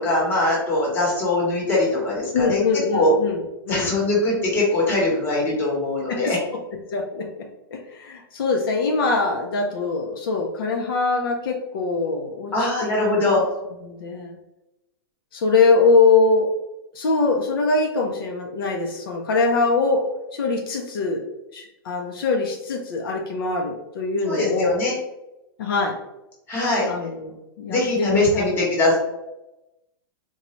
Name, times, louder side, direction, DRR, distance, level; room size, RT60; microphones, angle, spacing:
voice 1, 0.0-2.6 2.9-3.1 3.7-6.4 12.5-13.4 24.3-25.0 26.5-26.9 27.7-29.0, left 2 dB, 15° left, -4 dB, 1.0 m, -21 dB
voice 2, 2.3-3.9 6.1-6.4 6.9-7.3 7.7-13.4 13.8-14.4 15.3-16.5 16.9-20.0 20.3-21.2 21.5-24.8 25.6-25.9 26.9-28.6, left 3 dB, 70° left, 2 dB, 0.6 m, -23 dB
3.9 x 2.3 x 3.0 m, 0.93 s
supercardioid pair, 165°, 12 cm